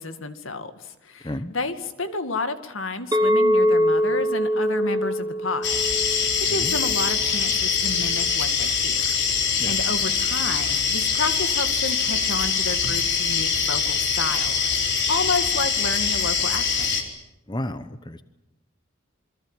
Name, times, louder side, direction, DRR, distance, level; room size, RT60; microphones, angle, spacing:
voice 1, 0.0-9.0 9.3-16.9, left 3 dB, 75° left, 9 dB, 2.2 m, -31 dB
Chink clink, 3.1-7.4, equal, 20° right, 2.2 m, -23 dB
sound 1, 5.6-17.0, left 6 dB, 55° left, 4.3 m, -23 dB
voice 2, 17.5-18.2, left 1 dB, 20° left, 11 dB, 1.0 m, -32 dB
27.5 x 23.0 x 9.1 m, 0.93 s
head